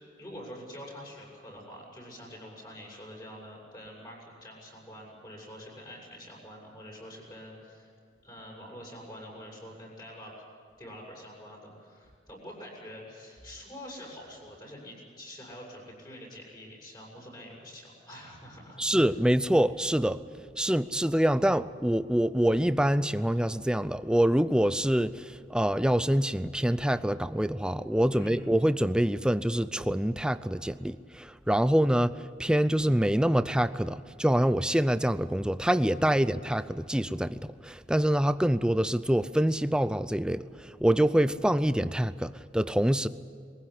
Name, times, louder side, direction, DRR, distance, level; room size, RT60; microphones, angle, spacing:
voice 1, 0.2-7.9 8.2-10.3 10.8-19.2 28.1-28.4, equal, 25° left, -2 dB, 7.6 m, -46 dB
voice 2, 18.8-20.2 20.6-32.1 32.4-40.4 40.8-43.1, equal, 5° right, 14 dB, 0.5 m, -25 dB
22.5 x 16.0 x 10.0 m, 2.3 s
head